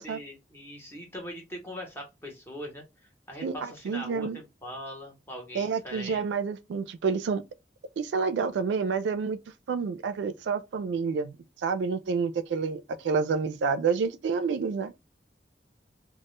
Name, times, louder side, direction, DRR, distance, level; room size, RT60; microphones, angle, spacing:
voice 1, 0.0-6.2, equal, 15° left, 0.7 m, -41 dB
voice 2, 3.4-4.4 5.5-7.4 8.0-9.4 9.7-11.3 11.6-14.9, right 5 dB, 90° right, 0.3 m, -29 dB
2.1 x 2.0 x 2.9 m
head